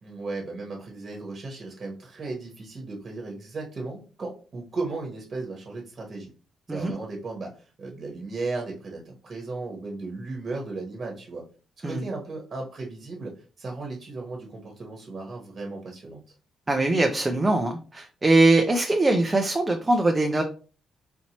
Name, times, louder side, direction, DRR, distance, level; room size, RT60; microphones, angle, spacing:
voice 1, 0.0-6.3 6.7-11.4 11.8-16.2, right 3 dB, 40° right, -1 dB, 1.2 m, -35 dB
voice 2, 16.7-20.4, right 2 dB, 20° right, 3 dB, 0.5 m, -22 dB
4.3 x 2.8 x 2.9 m, 0.37 s
cardioid pair, 90°, 0 cm